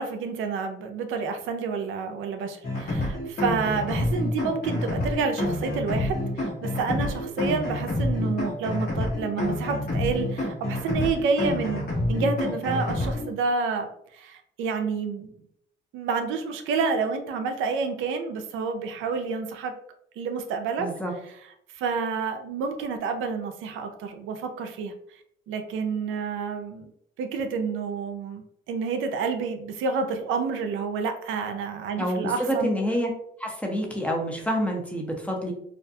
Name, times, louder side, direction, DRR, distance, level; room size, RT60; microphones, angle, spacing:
voice 1, 0.0-15.3 15.9-19.7 20.2-20.9 21.7-24.9 25.5-26.9 27.2-28.4 28.7-32.8, right 5 dB, 85° right, 6 dB, 0.4 m, -29 dB
sound 1, 2.6-13.3, left 1 dB, 50° left, 1.0 m, -28 dB
voice 2, 20.8-21.1 32.0-33.1 33.4-35.5, equal, 5° left, 0 dB, 0.6 m, -27 dB
2.4 x 2.2 x 2.6 m, 0.70 s
cardioid pair, 90°, 20 cm